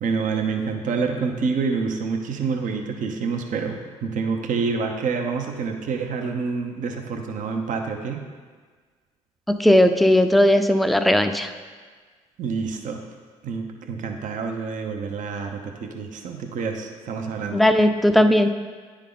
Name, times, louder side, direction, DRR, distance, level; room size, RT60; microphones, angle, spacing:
voice 1, 0.0-8.2 12.4-13.0 13.4-17.6, right 5 dB, 65° right, 4 dB, 0.8 m, -27 dB
voice 2, 9.5-11.5 17.5-18.5, left 1 dB, ahead, 8 dB, 0.5 m, -17 dB
9.8 x 3.7 x 3.8 m, 1.5 s
hypercardioid pair, 55°, 14 cm